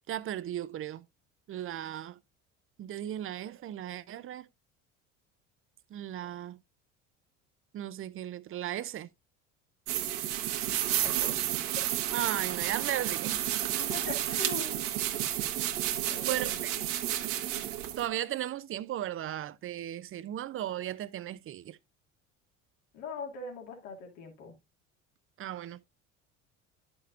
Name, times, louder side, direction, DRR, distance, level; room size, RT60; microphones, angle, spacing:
voice 1, 0.1-1.0 1.5-2.2 2.8-4.5 5.9-6.6 7.7-9.1 12.1-13.5 16.2-16.7 18.0-21.8 25.4-25.8, right 12 dB, 35° right, 0.6 m, -36 dB
sound 1, 9.9-18.1, right 12 dB, 65° right, 1.3 m, -31 dB
voice 2, 11.0-11.7 13.8-14.9 16.0-16.6 22.9-24.6, left 5 dB, 70° left, 2.4 m, -42 dB
11.0 x 6.1 x 2.4 m
hypercardioid pair, 70°, 38 cm